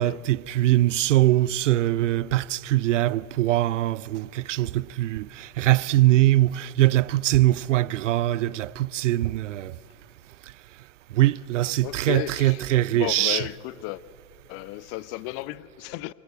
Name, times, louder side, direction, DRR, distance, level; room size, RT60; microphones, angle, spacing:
voice 1, 0.0-9.8 11.1-13.4, right 15 dB, 55° right, 0.6 m, -22 dB
voice 2, 11.8-12.6 12.9-14.0 14.5-16.1, left 19 dB, 35° left, 0.7 m, -33 dB
28.0 x 27.5 x 7.8 m
figure-of-eight pair, 85°, 44 cm